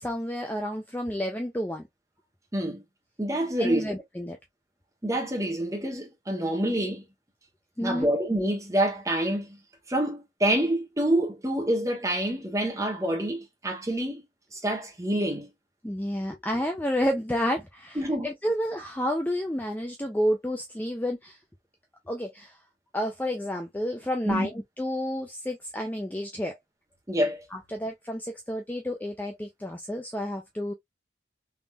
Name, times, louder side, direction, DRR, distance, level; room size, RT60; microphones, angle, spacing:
voice 1, 0.0-1.9 3.6-4.4 7.8-8.1 15.8-21.4 22.1-22.6 22.9-26.6 27.5-30.7, equal, 10° left, 0.4 m, -30 dB
voice 2, 2.5-2.8 3.2-4.0 5.0-7.0 7.8-9.6 9.9-14.2 14.5-15.5 18.0-18.3 24.3-24.5 27.1-27.4, right 1 dB, 15° right, 1.1 m, -27 dB
3.6 x 3.0 x 2.2 m
head